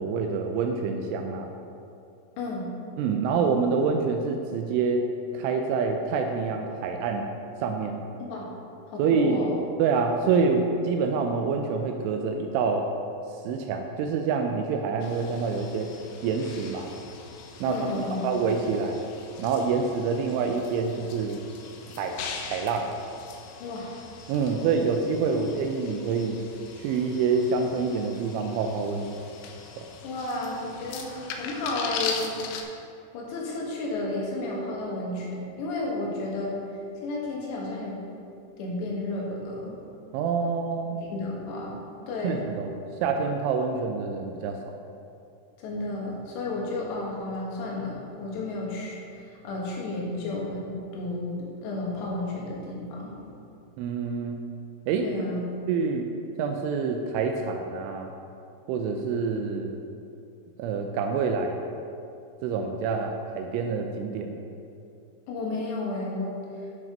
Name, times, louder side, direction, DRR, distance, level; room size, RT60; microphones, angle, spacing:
voice 1, 0.0-1.5 3.0-7.3 7.6-8.0 9.0-9.4 9.8-12.9 13.4-15.9 16.2-16.9 17.6-17.9 18.2-19.0 19.4-21.4 22.0-22.2 22.5-22.9 24.3-26.4 26.8-29.1 29.8-29.9 40.1-41.0 42.2-42.8 43.0-44.6 53.8-54.4 54.9-56.1 56.4-58.1 58.7-59.8 60.6-61.6 62.4-64.4, right 5 dB, 85° right, 4 dB, 3.0 m, -27 dB
voice 2, 2.4-2.7 8.2-8.5 8.9-9.5 17.7-18.2 23.6-24.0 25.3-25.4 30.0-32.4 33.1-36.6 37.0-38.0 38.6-39.8 40.9-41.8 42.1-42.4 45.6-53.3 55.0-55.4 65.3-66.4, left 2 dB, 70° left, -3 dB, 3.6 m, -32 dB
sound 1, 15.0-32.6, left 5 dB, 90° left, 3.1 m, -41 dB
10.5 x 6.1 x 5.1 m, 2.5 s
omnidirectional pair, 5.5 m